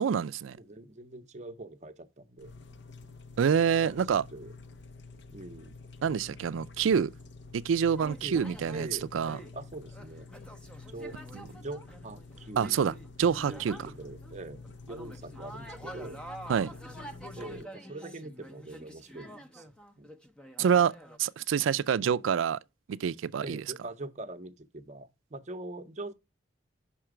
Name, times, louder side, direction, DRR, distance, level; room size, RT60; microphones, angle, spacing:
voice 1, 0.0-0.6 3.4-4.3 6.0-7.1 7.5-9.4 11.3-11.4 12.6-13.8 16.5-16.7 20.6-20.9 21.2-22.6 22.9-23.6, right 7 dB, 85° right, 0.4 m, -27 dB
voice 2, 0.5-2.6 3.8-4.0 4.3-4.5 5.3-5.8 8.2-8.4 8.7-9.1 9.5-10.3 10.9-11.2 11.5-12.8 13.5-16.2 17.3-20.1 22.0-22.3 23.4-26.1, right 2 dB, 35° right, 0.7 m, -43 dB
sound 1, 2.4-17.6, left 3 dB, 60° left, 0.6 m, -49 dB
sound 2, 8.0-8.9 9.2-14.3 14.6-21.2, right 1 dB, 5° left, 0.5 m, -47 dB
5.8 x 4.4 x 4.8 m
head